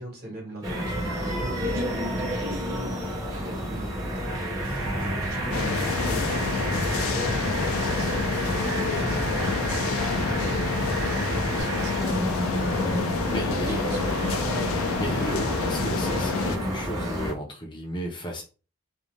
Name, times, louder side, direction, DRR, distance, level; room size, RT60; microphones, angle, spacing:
voice 1, 0.0-12.3 13.3-14.2, equal, 45° right, -1 dB, 1.1 m, -39 dB
sound 1, 0.6-17.3, right 1 dB, 15° right, 0.8 m, -30 dB
sound 2, 4.6-11.6, right 1 dB, 75° right, 1.1 m, -34 dB
sound 3, 5.5-16.6, left 5 dB, 80° left, 0.4 m, -29 dB
voice 2, 13.3-13.9 15.0-18.4, equal, 20° left, 0 dB, 0.5 m, -34 dB
2.5 x 2.1 x 3.1 m, 0.34 s
head